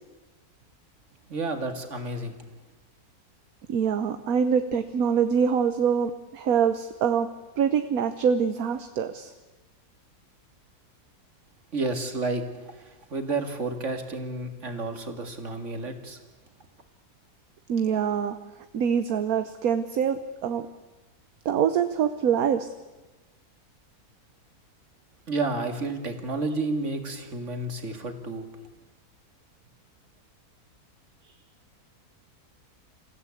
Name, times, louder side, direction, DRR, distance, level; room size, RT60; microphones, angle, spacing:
voice 1, 1.3-2.4 11.7-16.2 25.3-28.5, right 2 dB, 50° right, 6 dB, 2.5 m, -31 dB
voice 2, 3.7-7.3 7.6-9.3 17.7-18.4 18.7-20.7 21.4-22.7, right 7 dB, 70° right, 10 dB, 1.3 m, -24 dB
27.5 x 15.5 x 8.4 m, 1.1 s
omnidirectional pair, 1.6 m